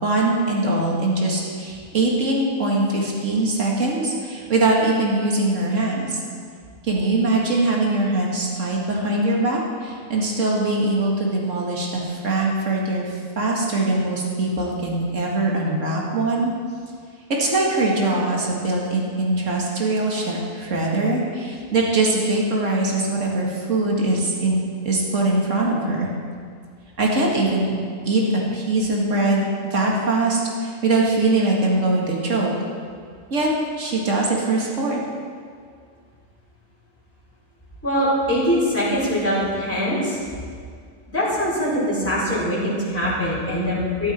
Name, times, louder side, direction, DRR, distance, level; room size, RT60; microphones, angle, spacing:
voice 1, 0.0-6.2 6.8-16.5 17.4-24.6 24.8-26.1 27.0-27.7 28.0-28.2 28.5-32.5 33.3-33.5 33.8-35.0, right 2 dB, 70° right, -2 dB, 2.3 m, -22 dB
voice 2, 37.8-40.2 41.1-44.1, equal, 10° left, -9 dB, 4.3 m, -22 dB
14.0 x 12.5 x 4.4 m, 2.1 s
omnidirectional pair, 1.3 m